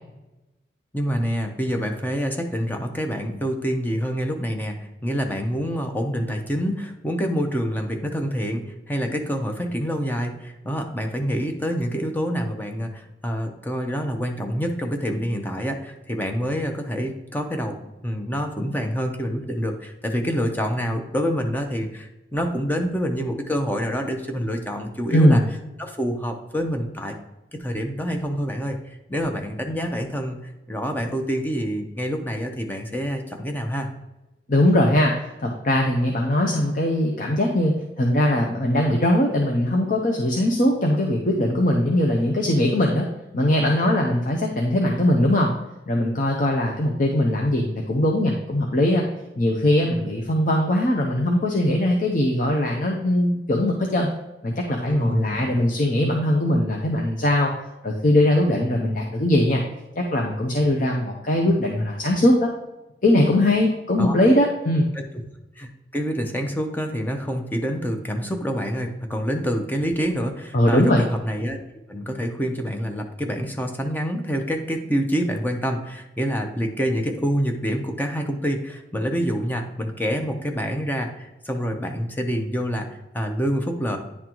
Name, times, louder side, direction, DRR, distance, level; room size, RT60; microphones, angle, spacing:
voice 1, 0.9-17.8 18.0-25.4 25.8-27.1 27.5-30.4 30.7-33.9 54.9-55.4 64.0-64.2 65.6-71.6 71.9-82.9 83.1-84.0, equal, 10° left, 4 dB, 0.6 m, -27 dB
voice 2, 25.1-25.4 34.5-35.1 35.4-43.1 43.3-45.5 45.9-49.0 49.4-54.1 54.4-57.5 57.8-59.6 60.0-62.5 63.0-64.9 70.5-71.0, left 1 dB, 50° left, 0 dB, 0.7 m, -20 dB
9.7 x 3.8 x 3.0 m, 1.0 s
head